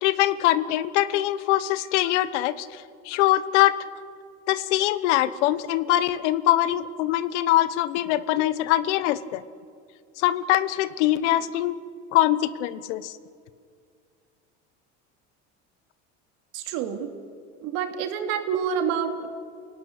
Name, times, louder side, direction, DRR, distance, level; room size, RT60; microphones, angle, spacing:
voice 1, 0.0-3.7 4.5-9.4 10.2-11.8 12.1-13.1, left 14 dB, 85° left, 15 dB, 1.2 m, -23 dB
voice 2, 16.5-17.1 17.6-19.3, right 7 dB, 70° right, 5 dB, 2.8 m, -28 dB
28.0 x 17.5 x 10.0 m, 2.3 s
supercardioid pair, 100°, 35 cm